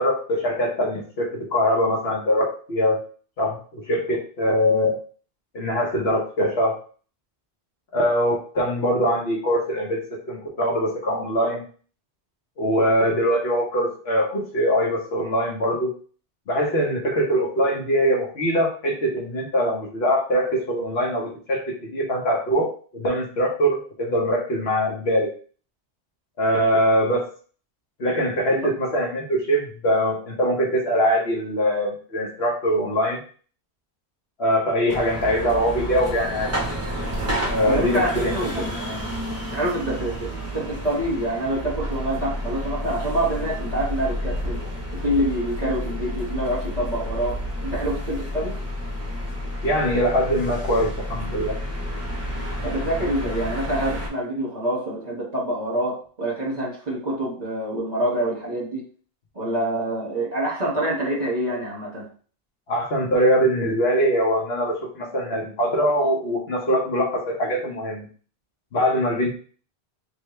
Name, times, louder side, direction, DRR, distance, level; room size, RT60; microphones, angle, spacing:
voice 1, 0.0-3.0 3.4-4.9 5.5-6.7 7.9-10.0 10.3-11.6 12.6-15.9 16.5-25.3 26.4-27.2 28.0-33.2 34.4-36.5 37.5-38.3 49.6-51.5 62.7-68.1 68.7-69.3, equal, 75° left, -1 dB, 1.4 m, -22 dB
sound 1, 34.9-54.1, equal, 15° right, 1.1 m, -30 dB
voice 2, 37.7-39.1 39.5-44.6 44.9-48.5 52.6-58.8 59.3-62.1, right 1 dB, 40° right, -3 dB, 1.6 m, -26 dB
3.4 x 3.3 x 3.2 m, 0.41 s
omnidirectional pair, 1.1 m